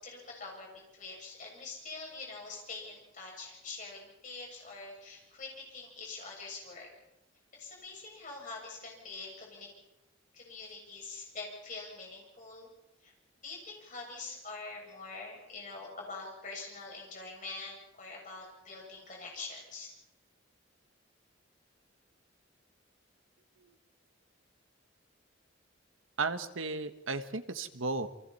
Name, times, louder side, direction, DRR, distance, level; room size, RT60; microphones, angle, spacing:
voice 1, 0.0-6.9 7.5-9.7 10.3-12.7 13.0-13.1 13.4-19.9, left 3 dB, 40° left, -1 dB, 7.1 m, -45 dB
voice 2, 26.2-28.1, right 3 dB, 85° right, 9 dB, 1.4 m, -34 dB
28.5 x 25.0 x 4.3 m, 0.93 s
head